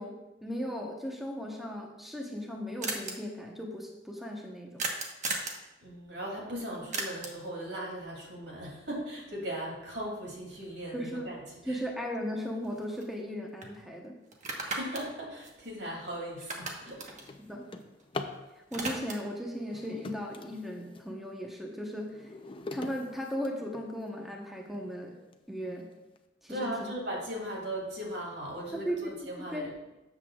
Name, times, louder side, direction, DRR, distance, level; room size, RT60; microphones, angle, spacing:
voice 1, 0.0-4.9 10.9-11.3 11.7-14.2 17.4-17.7 18.7-22.3 22.7-25.2 25.5-25.9 26.4-26.9 28.7-29.7, equal, ahead, -1 dB, 0.9 m, -37 dB
sound 1, 2.1-2.2 2.4-2.5 2.8-3.1 4.8-5.6 6.9-7.5 11.7-11.8 12.1-13.3 13.6-13.7 14.3-16.1 16.4-18.2 18.5-19.4, right 3 dB, 40° right, 1.2 m, -37 dB
voice 2, 5.8-11.4 11.6-11.8 14.6-17.1 26.5-29.7, right 1 dB, 70° right, -2 dB, 2.8 m, -38 dB
Drawer open or close, 15.8-16.0 16.5-18.5 19.5-21.1 21.6-24.1 24.7-24.8 25.3-25.4 25.8-26.2, left 3 dB, 30° left, 0.6 m, -43 dB
13.0 x 7.9 x 2.4 m, 1.0 s
head